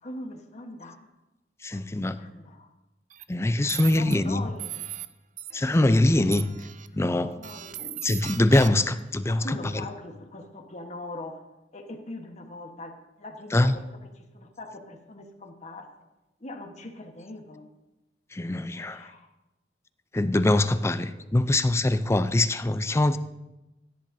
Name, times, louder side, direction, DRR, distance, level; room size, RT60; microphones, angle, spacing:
voice 1, 0.0-1.0 1.7-2.7 3.6-4.8 6.9-8.0 9.3-11.4 11.7-15.9 16.4-17.6 18.7-19.3 21.1-21.5, left 2 dB, 40° left, 3 dB, 1.2 m, -42 dB
voice 2, 1.6-2.2 3.3-4.4 5.5-6.5 7.0-7.3 8.0-9.4 13.5-13.7 18.3-19.0 20.1-23.2, left 1 dB, 15° left, 12 dB, 0.4 m, -23 dB
sound 1, 3.1-3.2 3.7-4.1 4.6-5.1 5.4-6.0 6.3-6.9 7.4-9.0, right 12 dB, 45° right, 0.4 m, -38 dB
16.5 x 10.5 x 2.7 m, 0.99 s
head